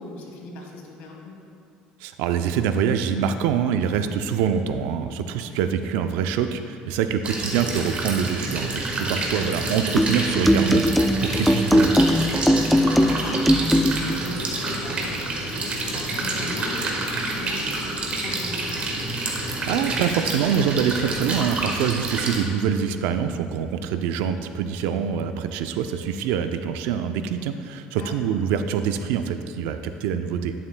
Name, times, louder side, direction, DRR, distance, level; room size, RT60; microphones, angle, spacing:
voice 1, 0.0-1.3 7.4-7.5 12.8-18.9 28.0-28.2, left 2 dB, 75° left, 0 dB, 1.5 m, -38 dB
voice 2, 2.0-11.9 19.7-30.5, right 7 dB, 85° right, 9 dB, 0.4 m, -25 dB
sound 1, 7.2-22.4, right 2 dB, 40° right, 1.4 m, -28 dB
sound 2, 10.0-14.2, equal, ahead, 0.3 m, -20 dB
11.5 x 7.2 x 2.2 m, 2.4 s
supercardioid pair, 105°, 3 cm